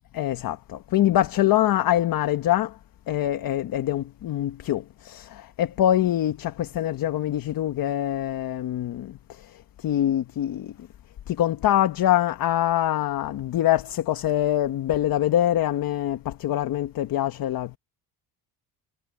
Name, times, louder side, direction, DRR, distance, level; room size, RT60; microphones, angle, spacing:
voice 1, 0.1-2.7 3.1-9.1 9.8-10.7 11.3-17.8, left 12 dB, 55° left, 1.1 m, -24 dB
cardioid pair, 130°, 41 cm